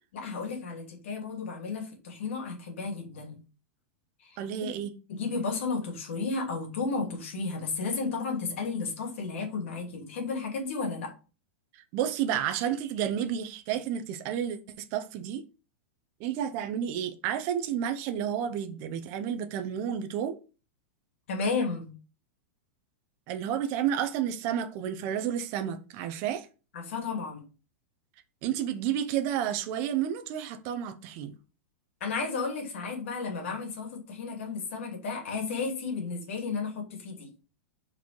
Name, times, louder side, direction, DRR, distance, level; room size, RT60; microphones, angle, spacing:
voice 1, 0.1-3.4 4.2-4.4 5.1-11.1 21.3-21.9 26.7-27.4 32.0-37.3, left 4 dB, 65° left, 2.7 m, -33 dB
voice 2, 4.4-4.9 11.7-15.4 16.2-20.4 23.3-26.5 28.4-31.3, right 9 dB, 30° right, 0.8 m, -31 dB
5.0 x 4.7 x 5.3 m
supercardioid pair, 170°, 7 cm